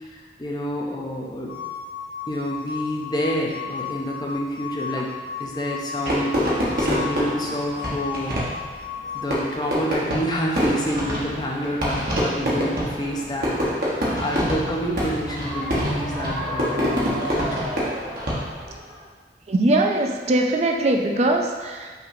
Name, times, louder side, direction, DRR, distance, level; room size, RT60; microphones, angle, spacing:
voice 1, 0.0-1.6 2.3-5.1 5.4-8.4 9.1-17.7, equal, 25° left, -2 dB, 0.5 m, -28 dB
sound 1, 1.5-9.2, left 6 dB, 70° left, 0.6 m, -35 dB
Fireworks, 6.1-18.8, equal, 55° right, 1.0 m, -26 dB
voice 2, 19.5-21.9, right 2 dB, 40° right, 3 dB, 0.4 m, -21 dB
5.7 x 3.2 x 2.6 m, 1.5 s
head